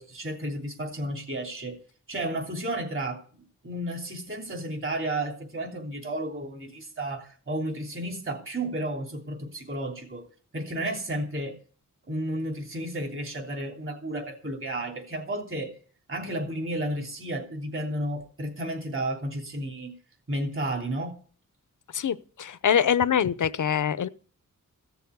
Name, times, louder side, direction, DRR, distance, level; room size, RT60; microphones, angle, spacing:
voice 1, 0.0-1.8 2.1-3.2 3.6-10.2 10.5-11.6 12.1-15.7 16.1-19.9 20.3-21.2, right 1 dB, 40° right, 3.3 m, -32 dB
voice 2, 21.9-24.1, left 8 dB, 65° left, 0.7 m, -24 dB
15.5 x 7.0 x 8.1 m
wide cardioid pair, 140°, 33 cm